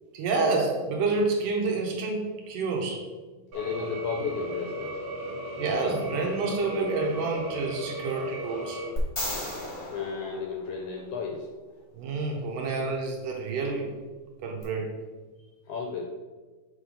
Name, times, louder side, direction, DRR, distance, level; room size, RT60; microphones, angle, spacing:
voice 1, 0.1-3.0 5.6-8.8 11.9-13.9 14.4-14.9, right 3 dB, 75° right, 0 dB, 2.2 m, -28 dB
voice 2, 3.5-4.9 9.9-11.4 15.7-16.0, left 5 dB, 80° left, 1 dB, 1.8 m, -33 dB
sound 1, 3.5-8.9, equal, 50° right, 2.1 m, -36 dB
sound 2, 9.0-11.2 14.6-14.7, left 1 dB, 55° left, 0.6 m, -35 dB
7.0 x 3.3 x 5.2 m, 1.3 s
omnidirectional pair, 4.0 m